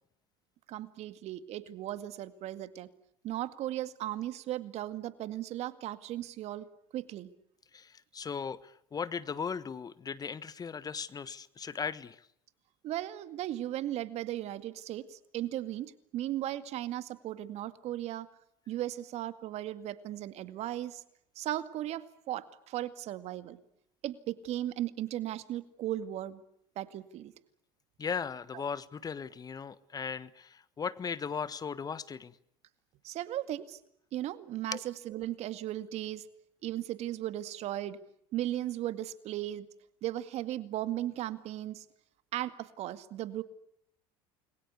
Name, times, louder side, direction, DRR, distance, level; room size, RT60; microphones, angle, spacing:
voice 1, 0.7-2.9 3.2-6.7 6.9-7.3 12.8-18.3 18.7-21.0 21.4-23.6 24.0-26.4 26.8-27.3 28.5-28.6 33.0-33.8 34.1-36.3 36.6-38.0 38.3-39.7 40.0-41.9 42.3-43.4, right 13 dB, 55° right, 12 dB, 2.1 m, -36 dB
voice 2, 7.7-12.2 28.0-32.3 34.7-34.8, left 6 dB, 30° left, 17 dB, 1.4 m, -37 dB
29.0 x 22.5 x 8.3 m, 0.72 s
hypercardioid pair, 85°, 13 cm